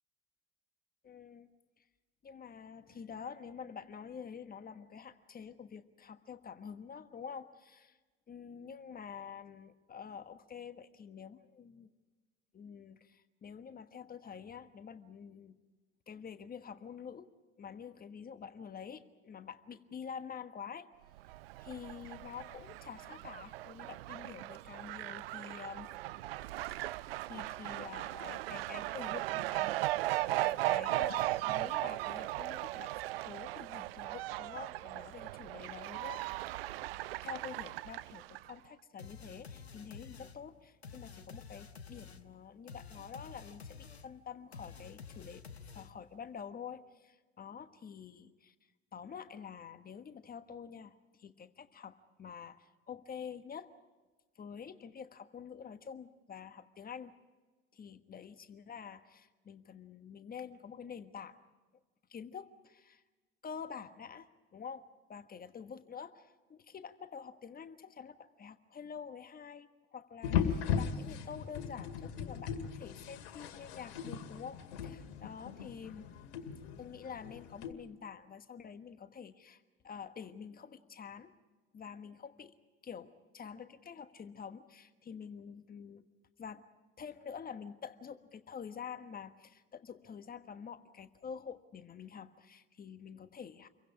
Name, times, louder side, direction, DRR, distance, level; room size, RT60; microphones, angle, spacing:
voice 1, 1.0-1.5 2.2-8.0 8.3-11.9 12.5-15.6 16.1-17.3 17.6-20.9 21.6-25.9 27.3-29.8 30.4-36.4 37.2-45.4 45.7-48.5 48.9-53.7 54.3-57.1 57.7-61.4 62.1-63.0 63.4-64.8 65.1-76.1 76.8-81.3 81.7-82.5 82.8-86.0 86.4-86.6 87.0-93.7, left 7 dB, 30° left, 10 dB, 1.4 m, -47 dB
Fowl, 21.2-38.5, right 17 dB, 65° right, 0.7 m, -37 dB
sound 1, 39.0-46.2, left 5 dB, 90° left, 1.1 m, -51 dB
sound 2, 70.2-77.7, left 7 dB, 65° left, 2.2 m, -38 dB
28.0 x 23.0 x 4.9 m, 1.3 s
figure-of-eight pair, 70°, 31 cm